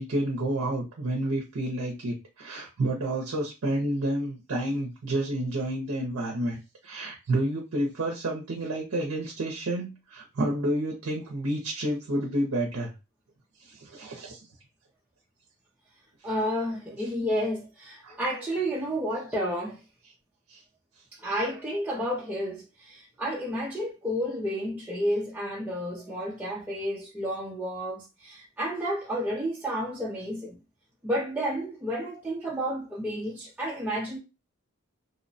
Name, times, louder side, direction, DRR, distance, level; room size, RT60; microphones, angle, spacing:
voice 1, 0.0-6.6 6.8-12.9 13.6-14.4 18.0-18.2 20.5-20.6, right 1 dB, 70° right, 0.5 m, -30 dB
voice 2, 16.2-19.8 21.2-30.6 31.0-34.2, equal, 5° right, 0.4 m, -31 dB
2.7 x 2.1 x 2.6 m
head